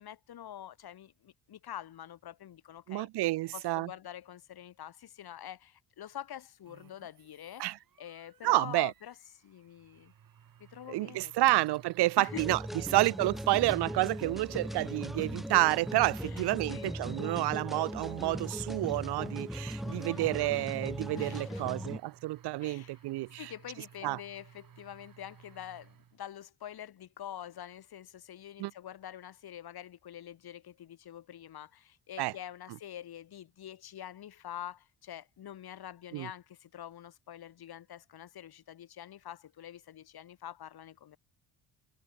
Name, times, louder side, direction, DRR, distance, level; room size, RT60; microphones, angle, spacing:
voice 1, 0.0-3.1 3.5-7.7 8.0-10.1 10.6-11.5 12.2-12.5 16.2-16.9 19.8-20.3 21.1-21.6 22.6-23.0 23.3-41.2, left 10 dB, 65° left, 6.4 m, -46 dB
voice 2, 2.9-3.9 7.6-7.8 8.4-8.9 10.9-12.6 12.9-23.5 24.0-24.2 28.6-28.7 32.2-32.3 36.1-36.3, right 18 dB, 70° right, 0.7 m, -29 dB
sound 1, 6.6-26.2, right 9 dB, 55° right, 4.9 m, -57 dB
sound 2, 12.3-22.0, equal, ahead, 2.9 m, -39 dB
cardioid pair, 85°, 40 cm